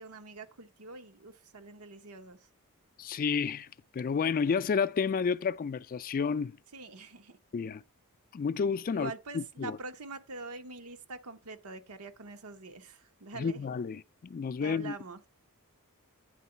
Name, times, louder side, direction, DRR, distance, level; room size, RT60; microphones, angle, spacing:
voice 1, 0.0-2.5 6.7-7.4 8.9-13.6 14.6-15.2, right 3 dB, 90° right, 1.0 m, -44 dB
voice 2, 3.0-3.7 3.9-6.6 7.5-7.8 8.3-9.8 13.4-14.9, left 5 dB, 40° left, 0.3 m, -31 dB
9.3 x 3.9 x 5.6 m
head